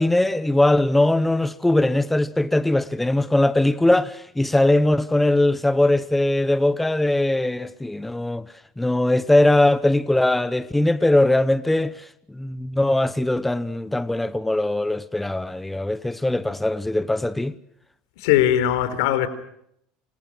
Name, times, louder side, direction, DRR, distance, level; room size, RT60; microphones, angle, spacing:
voice 1, 0.0-8.5 8.8-12.0 12.3-17.5, left 1 dB, 5° left, 1.0 m, -20 dB
voice 2, 18.2-19.3, left 12 dB, 90° left, 4.2 m, -19 dB
28.0 x 25.5 x 6.2 m
cardioid pair, 135°, 2 cm